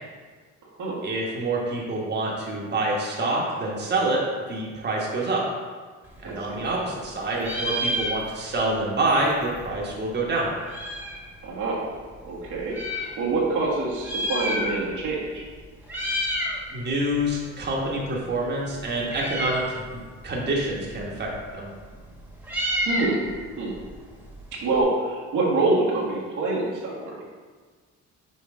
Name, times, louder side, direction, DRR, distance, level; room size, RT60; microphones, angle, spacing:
voice 1, 1.0-4.2 4.5-5.5 6.2-10.5 16.7-21.7, right 2 dB, 35° right, -3 dB, 1.2 m, -27 dB
Meow, 6.1-7.1 7.3-8.6 8.9-9.0 9.2-11.3 11.9-13.1 13.9-15.1 15.3-15.6 15.8-16.6 17.0-24.8, equal, 5° right, 1.4 m, -31 dB
voice 2, 11.4-12.0 12.2-15.5 22.8-23.2 23.6-23.8 24.5-27.2, right 3 dB, 80° right, -5 dB, 1.6 m, -26 dB
6.2 x 4.6 x 3.7 m, 1.5 s
cardioid pair, 90°, 30 cm